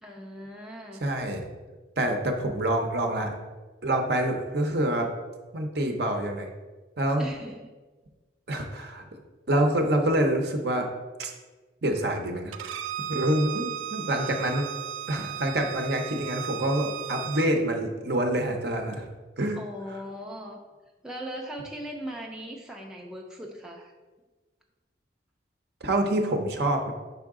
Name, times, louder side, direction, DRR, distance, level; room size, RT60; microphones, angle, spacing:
voice 1, 0.0-1.0 7.2-7.7 14.4-14.5 19.6-20.6 21.0-23.9, right 1 dB, 5° right, -1 dB, 0.4 m, -39 dB
voice 2, 1.0-1.4 2.0-3.3 3.8-5.1 5.5-6.5 7.0-7.3 8.5-9.0 9.5-10.9 11.2-11.3 11.8-12.8 13.1-14.6 15.1-19.0 19.4-19.6 19.9-20.0 25.8-26.9, right 1 dB, 55° right, 3 dB, 0.7 m, -26 dB
Bowed string instrument, 12.5-17.5, right 10 dB, 90° right, 0.3 m, -36 dB
5.6 x 4.7 x 3.6 m, 1.3 s
head